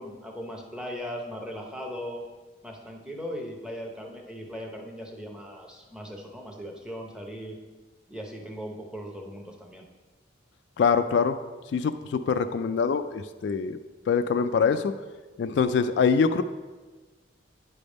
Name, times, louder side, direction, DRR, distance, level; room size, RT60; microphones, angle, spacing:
voice 1, 0.0-2.2 2.6-7.6 8.1-9.8, equal, 5° right, 1 dB, 0.7 m, -38 dB
voice 2, 10.8-11.4 11.7-13.8 14.1-14.9 15.4-16.4, left 5 dB, 65° left, 9 dB, 0.3 m, -24 dB
9.3 x 3.4 x 5.2 m, 1.3 s
head